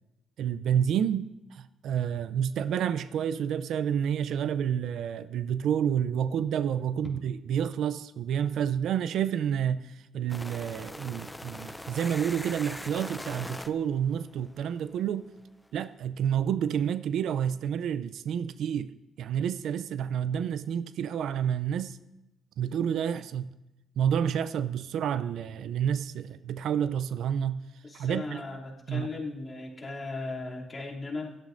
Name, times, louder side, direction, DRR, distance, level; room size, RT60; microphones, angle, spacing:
voice 1, 0.4-9.8 10.1-15.3 15.7-18.9 19.2-22.0 22.6-23.5 24.0-27.6 27.9-28.4 28.9-29.1, right 8 dB, 75° right, 0.4 m, -29 dB
sound 1, 10.3-15.2, left 1 dB, 10° left, 0.4 m, -42 dB
voice 2, 27.8-31.4, left 3 dB, 30° left, 2.8 m, -37 dB
17.0 x 11.5 x 2.6 m
cardioid pair, 90°, 0 cm